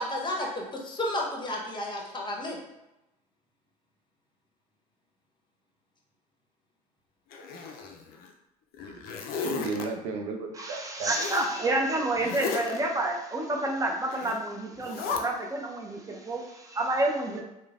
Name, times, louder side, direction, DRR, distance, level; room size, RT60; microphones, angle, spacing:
voice 1, 0.0-2.6, left 1 dB, 25° left, -1 dB, 0.8 m, -32 dB
Zipper (clothing), 7.3-8.3 8.7-9.9 11.1-11.5 12.2-12.8 14.1-14.4 14.8-15.2, left 5 dB, 55° left, 0.4 m, -34 dB
voice 2, 9.4-11.1 17.3-17.4, right 4 dB, 75° right, 4 dB, 0.5 m, -34 dB
voice 3, 10.5-17.4, right 2 dB, 20° right, 1 dB, 0.6 m, -29 dB
3.0 x 2.2 x 2.4 m, 0.92 s
hypercardioid pair, 70°, 19 cm